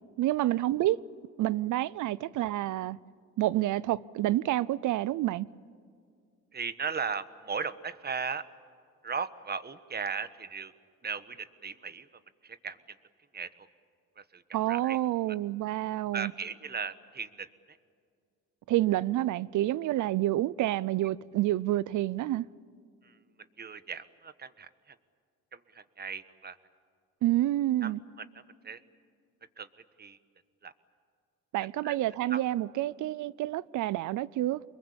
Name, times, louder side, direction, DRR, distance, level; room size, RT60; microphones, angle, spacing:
voice 1, 0.2-1.0 1.4-3.0 3.4-5.5 14.5-16.3 18.7-22.5 27.2-28.0 31.5-34.6, right 15 dB, 80° right, 0.6 m, -28 dB
voice 2, 6.5-8.5 9.0-10.7 11.0-12.1 12.4-12.8 13.3-13.5 14.2-14.4 14.7-15.0 16.1-17.8 23.0-23.2 23.6-24.9 25.5-26.6 27.8-27.9 28.2-28.3 28.6-28.8 29.6-29.7 30.0-30.2 30.6-30.7 31.8-32.0 32.3-32.4, right 5 dB, 35° right, 1.2 m, -37 dB
25.0 x 22.0 x 8.6 m
cardioid pair, 90°, 30 cm